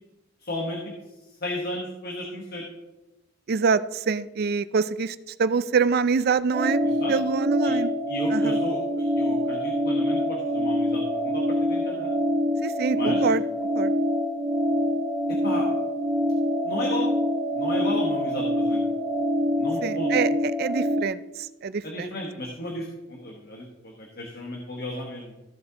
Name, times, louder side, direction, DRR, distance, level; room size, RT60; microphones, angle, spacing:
voice 1, 0.4-2.7 6.8-7.1 7.6-7.7 8.1-12.1 12.9-13.3 15.3-15.7 16.6-17.1 17.5-18.8 19.6-20.1 21.8-25.3, left 1 dB, 50° left, 0 dB, 1.3 m, -34 dB
voice 2, 3.5-6.8 7.1-7.9 8.3-8.6 12.6-13.4 13.7-13.9 19.8-21.2 21.6-22.1, right 5 dB, 50° right, 15 dB, 0.4 m, -25 dB
sound 1, 6.5-21.0, equal, 20° right, 0.8 m, -25 dB
14.5 x 7.3 x 2.9 m, 1.0 s
head